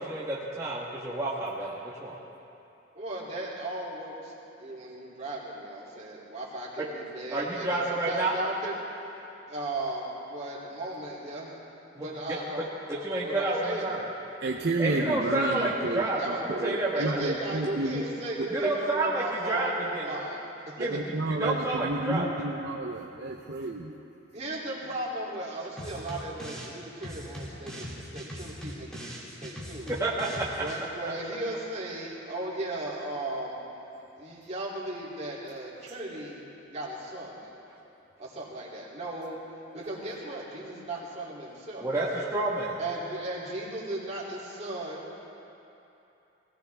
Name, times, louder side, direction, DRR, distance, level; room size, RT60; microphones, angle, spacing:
voice 1, 0.0-2.2 7.3-8.3 11.9-12.4 12.9-14.1 14.8-17.2 18.5-20.0 20.8-21.0 21.3-22.3 29.9-30.6 41.8-42.8, right 2 dB, 15° right, -6 dB, 1.3 m, -29 dB
voice 2, 2.9-8.8 9.5-11.5 11.9-12.7 13.2-13.9 16.1-16.4 16.9-20.9 24.3-29.9 30.6-33.6 34.2-37.6 38.2-39.4 39.7-41.9 42.8-45.0, right 1 dB, 35° right, -6 dB, 3.0 m, -36 dB
voice 3, 14.4-18.0 18.4-18.5 20.8-23.9, right 2 dB, 55° right, 0 dB, 0.7 m, -31 dB
sound 1, 25.8-26.7 27.0-30.8, equal, 5° left, 2.1 m, -41 dB
20.5 x 16.0 x 3.5 m, 2.9 s
head